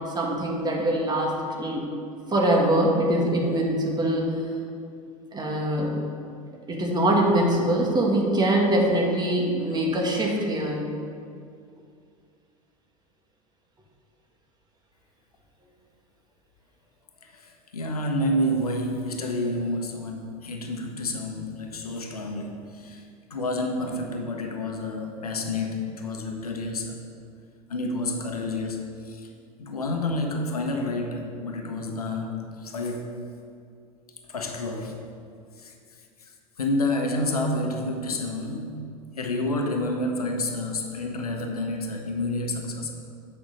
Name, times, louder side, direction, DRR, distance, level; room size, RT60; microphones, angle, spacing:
voice 1, 0.0-1.9 2.3-4.3 5.3-6.0 6.7-10.9, right 1 dB, 20° right, 0 dB, 1.8 m, -23 dB
voice 2, 17.2-27.0 27.7-29.3 29.6-33.2 34.3-35.0 35.6-42.9, left 1 dB, 85° left, 3 dB, 1.0 m, -29 dB
8.8 x 5.8 x 5.4 m, 2.3 s
hypercardioid pair, 85°, 19 cm